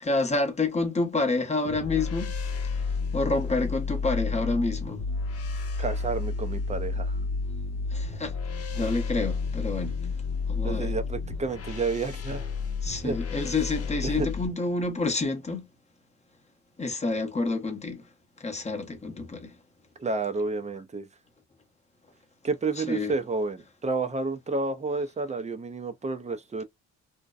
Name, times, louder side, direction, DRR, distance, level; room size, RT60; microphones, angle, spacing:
voice 1, 0.0-2.4 3.1-5.0 7.9-8.4 8.7-10.1 10.5-10.9 12.8-15.7 16.8-18.0 18.4-19.5 22.8-23.1, left 3 dB, 20° left, 0.8 m, -28 dB
sound 1, 1.6-14.5, left 4 dB, 50° left, 0.7 m, -31 dB
voice 2, 5.8-7.2 10.6-12.4 13.0-13.2 14.0-14.3 20.0-21.1 22.4-26.6, right 3 dB, 25° right, 0.5 m, -30 dB
2.6 x 2.1 x 2.4 m
cardioid pair, 90°, 30 cm